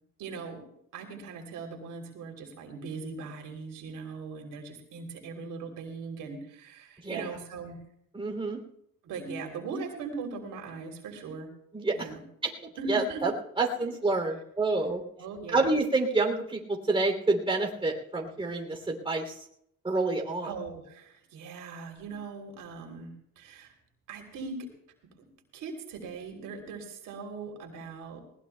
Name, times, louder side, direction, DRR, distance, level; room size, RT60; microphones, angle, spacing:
voice 1, 0.2-7.8 9.0-11.5 11.9-12.2 12.8-13.2 13.8-13.9 15.2-15.7 20.4-23.7 24.1-24.7 25.2-28.2, right 4 dB, 80° right, 2 dB, 3.2 m, -40 dB
voice 2, 8.1-8.6 11.7-12.1 12.4-12.5 12.9-13.3 13.6-15.0 15.5-19.3 19.8-20.5, right 3 dB, 15° right, 2 dB, 2.9 m, -28 dB
20.0 x 19.0 x 2.2 m, 0.72 s
cardioid pair, 115°, 31 cm